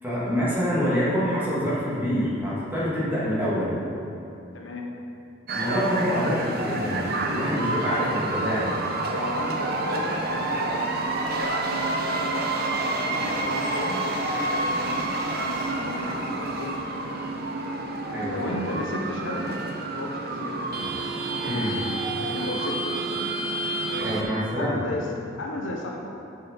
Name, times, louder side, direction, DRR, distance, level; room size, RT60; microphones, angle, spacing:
voice 1, 0.0-3.8 5.5-8.7 18.1-18.6 21.4-21.8 24.0-24.8, equal, 10° right, -9 dB, 2.0 m, -26 dB
voice 2, 4.5-5.0 9.1-16.8 18.3-19.6 19.9-20.6 22.2-23.0 23.9-25.1 25.4-26.2, left 2 dB, 70° left, 0 dB, 0.8 m, -35 dB
sound 1, 5.5-24.2, right 2 dB, 50° right, 0.7 m, -28 dB
7.3 x 6.0 x 5.3 m, 2.6 s
head